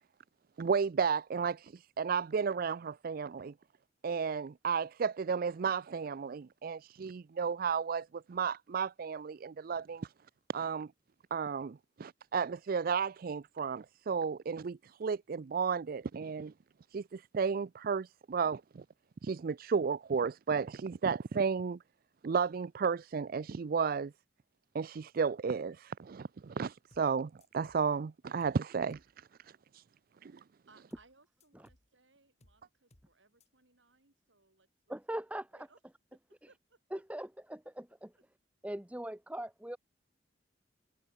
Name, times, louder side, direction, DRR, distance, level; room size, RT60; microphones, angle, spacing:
voice 1, 0.6-3.5 4.0-10.1 10.5-10.9 11.3-16.5 16.9-18.8 19.2-21.8 22.2-24.1 24.7-29.3 29.7-29.8 30.2-30.3, right 6 dB, 50° right, 0.4 m, -33 dB
sound 1, 26.9-27.1 27.4-27.9 28.4-28.6 28.9-29.1 30.9-31.1 31.4-31.9 32.4-32.6 32.9-33.1 33.4-33.5, left 1 dB, 35° left, 2.6 m, -65 dB
voice 2, 30.7-35.0 35.5-35.8 36.5-37.0, right 3 dB, 90° right, 5.3 m, -66 dB
voice 3, 34.9-35.5 36.9-38.1 38.6-39.8, right 1 dB, 5° right, 1.0 m, -40 dB
head